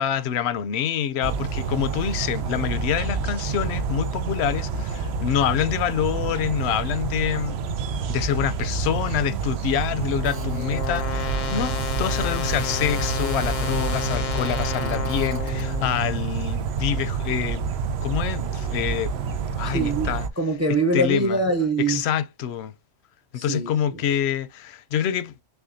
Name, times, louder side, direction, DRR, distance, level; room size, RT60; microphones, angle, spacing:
voice 1, 0.0-7.6 8.1-17.8 18.0-20.3 20.9-21.4 21.9-22.7 23.3-25.3, left 9 dB, 85° left, 0.8 m, -26 dB
sound 1, 1.2-20.3, right 5 dB, 85° right, 0.8 m, -28 dB
sound 2, 9.3-16.4, left 7 dB, 55° left, 0.6 m, -32 dB
Telephone, 10.2-15.7, right 3 dB, 55° right, 0.9 m, -43 dB
voice 2, 19.6-22.0 23.4-24.0, right 2 dB, 20° right, 0.5 m, -24 dB
6.8 x 2.3 x 2.5 m
omnidirectional pair, 1.1 m